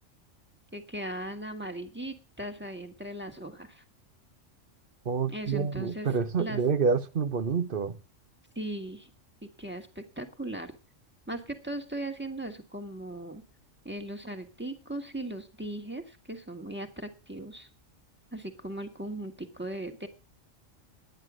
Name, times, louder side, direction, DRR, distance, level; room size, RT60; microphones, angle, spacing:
voice 1, 0.7-3.8 5.3-6.1 6.4-6.6 8.5-9.1 9.4-10.7 11.3-13.4 13.8-17.7 18.3-20.1, right 1 dB, 10° right, 1.6 m, -38 dB
voice 2, 5.0-8.0, right 5 dB, 50° right, 0.9 m, -28 dB
10.5 x 9.7 x 6.1 m
omnidirectional pair, 1.3 m